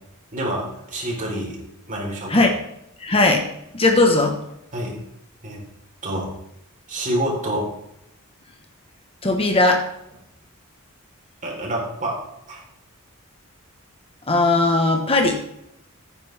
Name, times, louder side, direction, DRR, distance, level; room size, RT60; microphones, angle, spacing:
voice 1, 0.3-1.6 1.9-2.5 4.7-5.0 5.4-5.6 6.0-6.3 6.9-7.7 11.4-12.2 12.5-12.6, right 1 dB, 35° right, -2 dB, 4.1 m, -27 dB
voice 2, 3.0-3.4 3.7-4.4 9.2-9.8 14.3-15.4, left 2 dB, 25° left, 3 dB, 1.3 m, -18 dB
15.5 x 9.6 x 3.6 m, 0.81 s
head